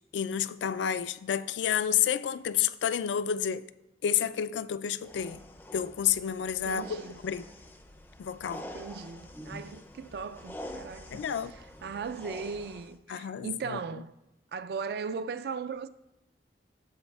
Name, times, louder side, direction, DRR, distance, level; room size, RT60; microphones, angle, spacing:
voice 1, 0.1-3.7 4.0-5.4 5.7-7.4 8.2-8.6 11.1-11.5 13.1-13.8, left 9 dB, 85° left, 0.3 m, -30 dB
sound 1, 5.0-13.0, left 1 dB, 10° left, 0.4 m, -46 dB
voice 2, 6.6-7.2 8.7-14.1 14.5-15.9, right 5 dB, 60° right, 0.3 m, -38 dB
12.5 x 7.0 x 2.3 m
head